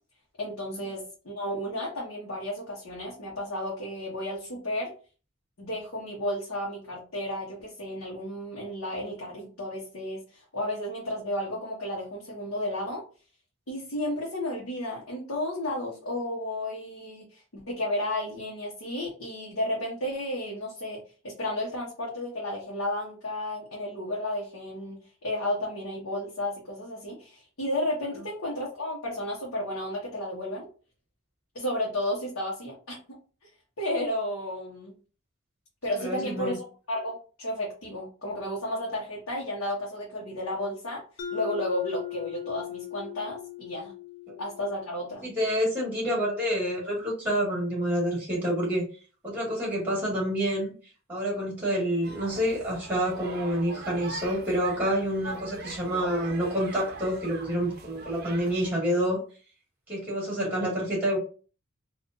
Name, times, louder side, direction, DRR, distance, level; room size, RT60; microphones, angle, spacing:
voice 1, 0.4-4.9 5.6-13.0 13.7-30.7 31.5-33.2 33.8-34.9 35.8-41.0 41.3-43.9 44.4-45.3, left 1 dB, 85° left, -4 dB, 1.0 m, -33 dB
voice 2, 36.0-36.6 44.3-44.4 45.2-48.8 49.2-50.7 51.1-59.2 59.9-61.2, equal, 10° right, -3 dB, 1.7 m, -28 dB
Mallet percussion, 41.2-45.7, left 12 dB, 40° left, 0.4 m, -39 dB
sound 1, 52.0-58.7, right 3 dB, 45° right, 0.5 m, -41 dB
3.7 x 2.4 x 2.5 m, 0.37 s
head